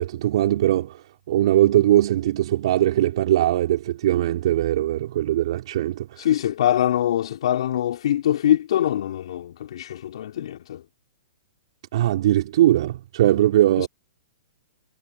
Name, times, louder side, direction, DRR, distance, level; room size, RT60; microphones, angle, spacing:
voice 1, 0.0-6.3 11.9-13.9, right 13 dB, 60° right, 4.5 m, -20 dB
voice 2, 6.2-10.8 13.8-13.9, left 11 dB, 65° left, 3.5 m, -23 dB
hypercardioid pair, 130°, 3 cm